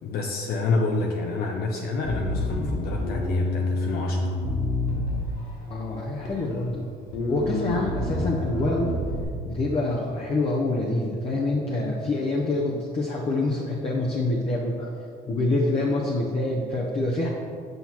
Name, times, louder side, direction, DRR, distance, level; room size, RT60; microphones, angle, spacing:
voice 1, 0.0-4.3, left 3 dB, 65° left, 1 dB, 0.6 m, -28 dB
Bass guitar, 2.0-5.6 6.2-6.8 7.1-9.2, left 1 dB, 85° left, 1.2 m, -28 dB
voice 2, 5.6-6.9 7.3-8.9 9.4-14.9 15.3-17.3, left 2 dB, 35° left, -2 dB, 0.8 m, -26 dB
7.9 x 5.7 x 2.9 m, 2.4 s
cardioid pair, 110°, 17 cm